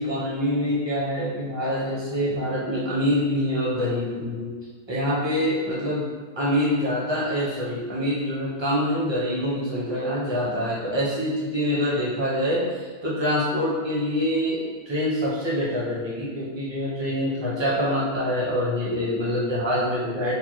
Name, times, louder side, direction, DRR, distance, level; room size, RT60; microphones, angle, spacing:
voice 1, 0.0-4.5 4.9-6.1 6.4-20.3, equal, 30° right, -6 dB, 0.5 m, -25 dB
5.2 x 2.1 x 3.1 m, 1.5 s
omnidirectional pair, 1.7 m